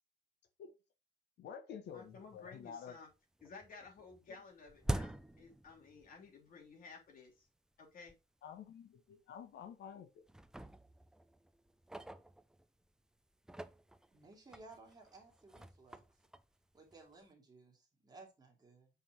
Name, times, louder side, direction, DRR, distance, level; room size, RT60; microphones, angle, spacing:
voice 1, 1.4-3.0 4.3-4.4 8.4-10.1, left 7 dB, 75° left, 7 dB, 1.4 m, -50 dB
voice 2, 1.9-3.1 3.4-7.5 7.8-8.1, left 4 dB, 50° left, 1 dB, 3.2 m, -55 dB
sound 1, 2.1-2.2 2.5-3.1 3.4-6.3 6.6-6.7 7.5-7.6 8.1-8.2 8.5-8.7 9.4-9.9 10.3-12.9 13.3-17.3, right 1 dB, 5° right, 0.4 m, -46 dB
voice 3, 14.1-16.0 16.7-18.9, right 3 dB, 20° right, 1 dB, 2.5 m, -58 dB
7.7 x 5.6 x 3.0 m, 0.28 s
cardioid pair, 170°, 18 cm